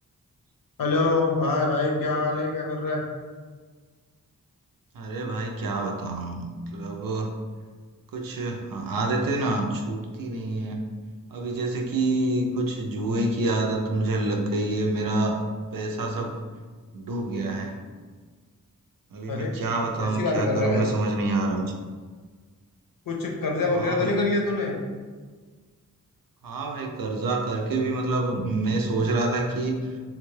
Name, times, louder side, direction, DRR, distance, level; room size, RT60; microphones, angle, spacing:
voice 1, 0.8-3.0 19.3-19.6 20.0-20.9 23.1-24.8, left 3 dB, 80° left, 0 dB, 0.7 m, -25 dB
voice 2, 4.9-6.4 6.7-7.3 8.1-10.9 11.3-15.4 15.7-16.4 16.9-17.8 19.1-21.7 23.7-24.2 26.4-29.9, right 2 dB, 80° right, 2 dB, 0.5 m, -27 dB
3.5 x 2.3 x 3.1 m, 1.5 s
wide cardioid pair, 65°, 34 cm